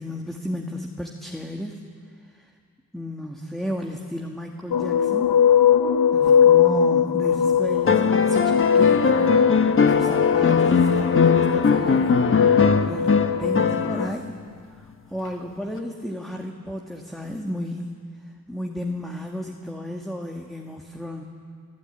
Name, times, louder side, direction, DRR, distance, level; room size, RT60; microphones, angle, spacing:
voice 1, 0.0-1.8 2.4-2.5 2.9-5.3 6.1-12.2 12.8-14.4 15.1-17.9 18.5-21.2, left 1 dB, ahead, 1 dB, 1.9 m, -33 dB
sound 1, 4.7-14.1, left 8 dB, 75° left, 0.9 m, -20 dB
sound 2, 7.8-14.3 15.8-15.9, left 5 dB, 35° left, 1.2 m, -21 dB
26.5 x 16.0 x 9.2 m, 2.2 s
cardioid pair, 100°, 35 cm